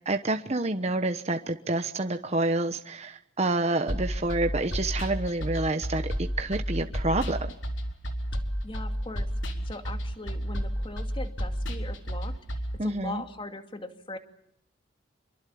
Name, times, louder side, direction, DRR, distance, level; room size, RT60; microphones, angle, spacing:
voice 1, 0.0-7.4 12.8-13.2, right 2 dB, 35° right, 7 dB, 1.1 m, -28 dB
sound 1, 3.9-12.8, equal, 80° left, 4.1 m, -31 dB
voice 2, 8.6-9.3 9.6-14.2, left 2 dB, 25° left, 7 dB, 2.4 m, -40 dB
27.0 x 23.5 x 8.6 m, 0.74 s
head